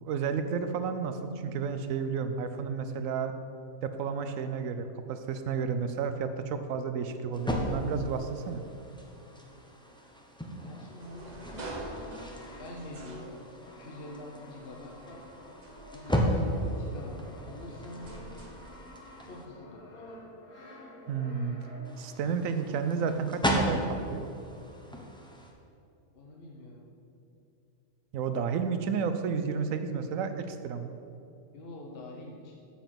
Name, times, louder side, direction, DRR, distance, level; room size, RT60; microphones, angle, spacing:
voice 1, 0.0-3.3 3.8-8.6 21.1-21.6 22.0-24.2 28.1-30.9, right 6 dB, 75° right, 9 dB, 0.9 m, -31 dB
sound 1, 7.3-19.5 21.8-25.5, equal, 5° left, 0.6 m, -35 dB
voice 2, 10.6-12.0 12.6-13.4 13.8-15.3 15.9-18.1 19.2-20.0 26.1-26.9 31.5-32.6, left 1 dB, 50° left, 0 dB, 0.9 m, -45 dB
sound 2, 11.0-13.9 14.5-18.7, right 2 dB, 35° right, 0.9 m, -46 dB
Brass instrument, 11.4-22.2, left 1 dB, 85° left, 1.6 m, -51 dB
7.2 x 7.0 x 5.8 m, 2.7 s
omnidirectional pair, 1.5 m